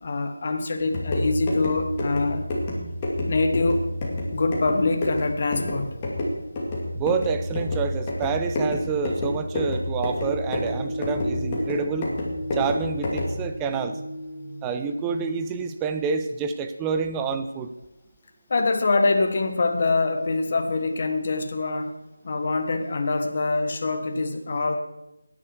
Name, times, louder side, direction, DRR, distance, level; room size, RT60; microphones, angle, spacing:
voice 1, 0.0-2.5 3.3-3.8 4.3-5.9 18.5-21.9 22.2-24.8, left 3 dB, 40° left, 6 dB, 1.5 m, -24 dB
sound 1, 0.8-13.4, left 1 dB, 20° left, 2.4 m, -29 dB
voice 2, 6.9-12.1 12.5-14.0 14.6-17.7, right 5 dB, 10° right, 8 dB, 0.6 m, -28 dB
sound 2, 10.2-15.7, equal, 55° right, 1.5 m, -35 dB
15.0 x 10.0 x 4.6 m, 0.97 s
figure-of-eight pair, 165°, 0 cm